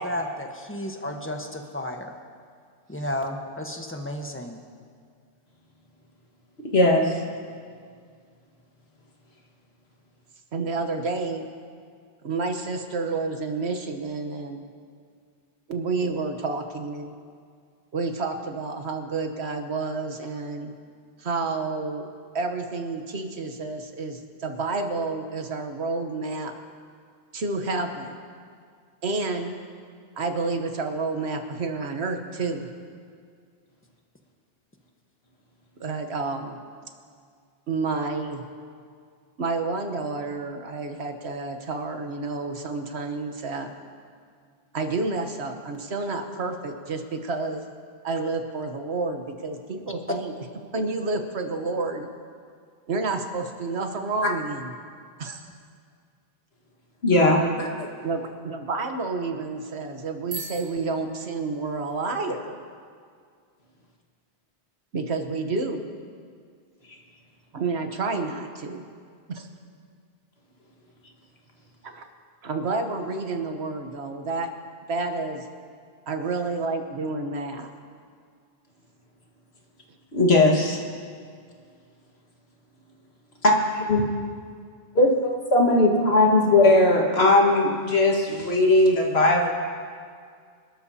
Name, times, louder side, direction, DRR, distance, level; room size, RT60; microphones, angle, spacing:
voice 1, 0.0-2.1 2.9-4.6, left 1 dB, 10° left, 3 dB, 1.1 m, -32 dB
voice 2, 6.7-7.2 57.0-57.7 66.9-67.0 80.1-80.8 83.4-84.0 84.9-89.5, left 2 dB, 70° left, 0 dB, 1.9 m, -19 dB
voice 3, 10.5-11.4 12.2-14.6 15.7-17.1 17.9-20.7 21.2-22.1 22.3-26.5 27.3-28.2 29.0-29.6 30.2-32.7 35.8-36.6 37.7-38.4 39.4-43.7 44.7-47.6 48.0-50.3 50.7-52.1 52.9-54.7 55.2-55.5 57.4-57.5 58.0-62.6 64.9-65.9 67.5-68.8 69.3-69.5 71.8-72.1 72.4-74.5 74.9-75.5 76.1-77.7, right 3 dB, 75° right, 5 dB, 1.3 m, -29 dB
Bicycle bell, 60.2-62.0, right 4 dB, 60° right, 2.7 m, -41 dB
26.0 x 12.5 x 2.8 m, 2.1 s
omnidirectional pair, 1.1 m